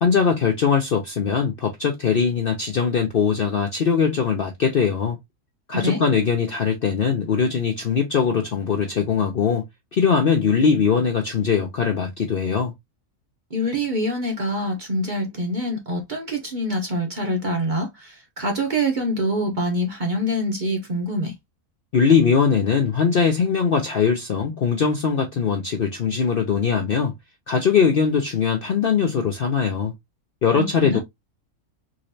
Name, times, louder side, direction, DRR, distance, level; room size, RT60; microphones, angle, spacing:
voice 1, 0.0-5.2 5.7-9.6 9.9-12.7 21.9-27.1 27.5-29.9 30.4-31.0, left 6 dB, 55° left, 0.6 m, -21 dB
voice 2, 13.5-21.3 30.5-31.0, equal, 40° right, 0.8 m, -25 dB
3.8 x 3.1 x 2.6 m
omnidirectional pair, 1.6 m